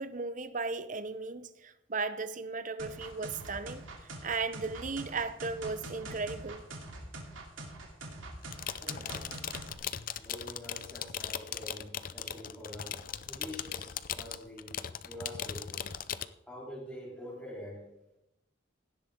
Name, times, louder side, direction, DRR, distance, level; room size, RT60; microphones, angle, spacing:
voice 1, 0.0-3.8 4.2-6.6, right 4 dB, 40° right, 0.8 m, -36 dB
sound 1, 2.8-9.7, right 2 dB, 75° right, 2.9 m, -44 dB
sound 2, 8.4-16.3, left 9 dB, 45° left, 0.5 m, -39 dB
voice 2, 8.7-9.4 10.2-13.0 13.3-14.7 15.0-15.8 16.5-17.9, equal, 5° left, 3.1 m, -46 dB
16.5 x 11.5 x 3.8 m
head